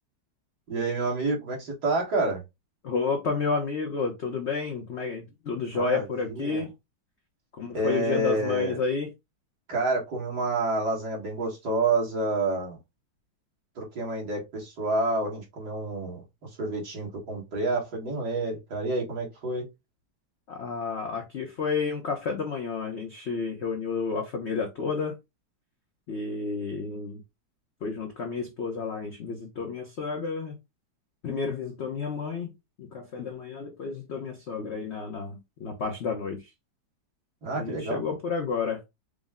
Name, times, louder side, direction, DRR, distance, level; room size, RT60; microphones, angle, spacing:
voice 1, 0.7-2.4 5.7-6.6 7.7-8.8 9.7-12.8 13.8-19.7 37.4-38.0, right 2 dB, 60° right, 1.9 m, -28 dB
voice 2, 2.8-6.7 7.5-9.1 20.5-25.2 26.1-27.2 27.8-30.5 31.2-32.5 32.8-36.5 37.5-38.8, left 4 dB, 65° left, 0.6 m, -31 dB
5.0 x 2.1 x 3.4 m
omnidirectional pair, 2.1 m